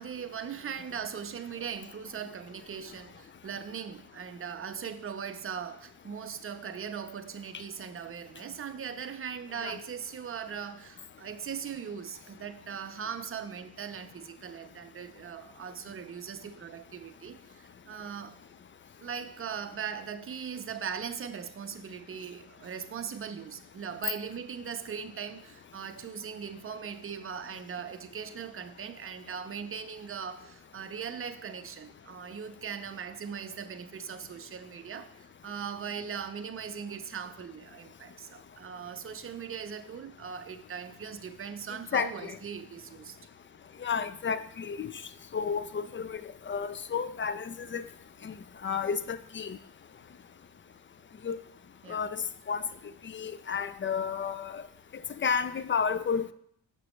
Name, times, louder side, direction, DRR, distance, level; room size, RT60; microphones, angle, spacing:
voice 1, 0.0-18.4 19.0-43.2 51.8-52.1, right 7 dB, 30° right, 0.6 m, -39 dB
voice 2, 41.9-42.4 43.8-45.0 45.3-46.2 46.5-47.8 48.2-48.3 48.6-49.6 51.2-51.4 51.9-52.2 52.5-52.6 53.0-54.6 55.2-56.3, left 6 dB, 30° left, 0.4 m, -31 dB
6.1 x 6.0 x 3.1 m
cardioid pair, 60°, 44 cm